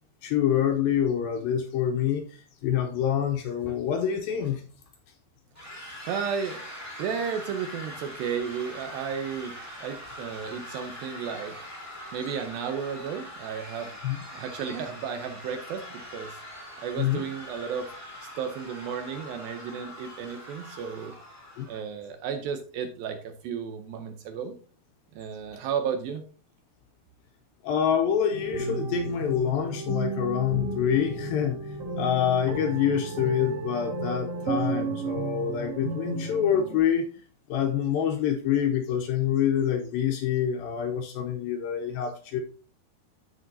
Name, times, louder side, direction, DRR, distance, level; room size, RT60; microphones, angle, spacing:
voice 1, 0.2-4.6 14.0-14.2 17.0-17.3 21.6-21.7 27.6-37.1 37.5-42.4, left 9 dB, 80° left, 4 dB, 2.2 m, -26 dB
sound 1, 5.5-21.8, equal, 15° left, 0.5 m, -43 dB
voice 2, 6.0-6.6 7.0-11.7 12.1-14.0 14.3-16.4 16.8-17.9 18.2-21.1 21.7-24.5 25.1-26.2, right 7 dB, 75° right, 7 dB, 2.2 m, -33 dB
sound 2, 28.3-36.8, right 3 dB, 50° right, 2.1 m, -33 dB
14.0 x 5.0 x 2.7 m, 0.40 s
omnidirectional pair, 4.7 m